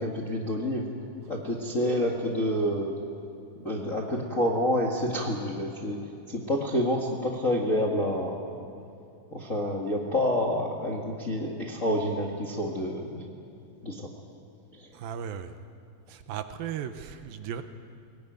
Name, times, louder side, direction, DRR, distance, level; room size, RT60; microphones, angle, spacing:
voice 1, 0.0-3.0 3.6-8.6 9.3-13.2 13.8-14.1 14.7-14.9, left 1 dB, 35° left, -1 dB, 1.2 m, -28 dB
voice 2, 14.9-15.6 16.1-17.6, right 8 dB, 75° right, 9 dB, 2.6 m, -36 dB
22.5 x 18.5 x 9.4 m, 2.5 s
omnidirectional pair, 4.5 m